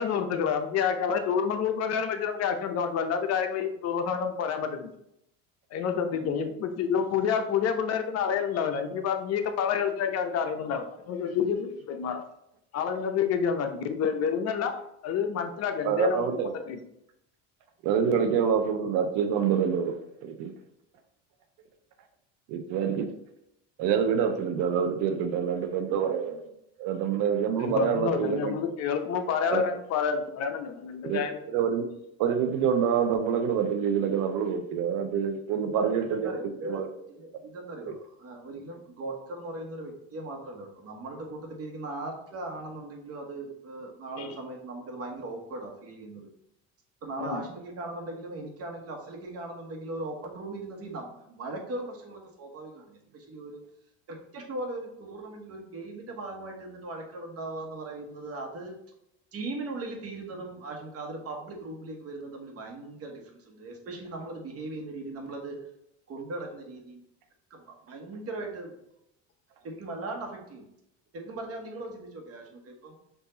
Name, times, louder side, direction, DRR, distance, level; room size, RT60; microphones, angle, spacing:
voice 1, 0.0-4.9 5.7-12.2 12.7-16.3 16.7-16.8 27.6-31.4 44.2-44.3 47.2-47.4, left 7 dB, 50° left, 7 dB, 0.6 m, -28 dB
voice 2, 15.8-16.5 17.8-19.9 20.2-20.5 22.5-23.1 23.8-26.4 26.8-28.6 29.5-29.7 31.0-31.2 31.5-31.9 32.2-36.3 36.7-36.9 37.9-38.0, right 7 dB, 70° right, 7 dB, 0.6 m, -26 dB
voice 3, 35.6-36.8 37.2-46.3 47.0-53.6 54.1-58.7 59.3-65.6 66.1-67.0 67.5-68.7 69.6-70.7 71.1-73.0, right 2 dB, 45° right, 2 dB, 1.2 m, -39 dB
4.6 x 2.6 x 3.9 m, 0.79 s
supercardioid pair, 95°, 33 cm